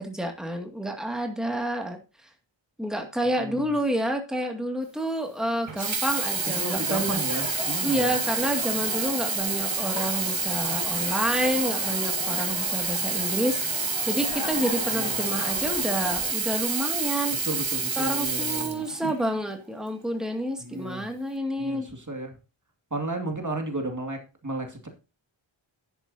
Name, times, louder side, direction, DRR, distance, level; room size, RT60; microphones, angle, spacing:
voice 1, 0.0-2.0 2.8-7.2 7.8-17.3 18.0-21.9, right 1 dB, ahead, 3 dB, 2.1 m, -29 dB
voice 2, 3.2-3.7 6.4-8.2 14.9-15.2 17.4-18.8 20.6-21.1 21.6-22.3 22.9-24.9, right 2 dB, 40° right, 3 dB, 2.3 m, -34 dB
Sink (filling or washing), 5.7-19.4 20.2-20.3, right 4 dB, 70° right, 1.8 m, -28 dB
sound 1, 6.1-16.3, left 5 dB, 60° left, 1.2 m, -38 dB
10.5 x 10.5 x 2.8 m, 0.30 s
wide cardioid pair, 50°, 48 cm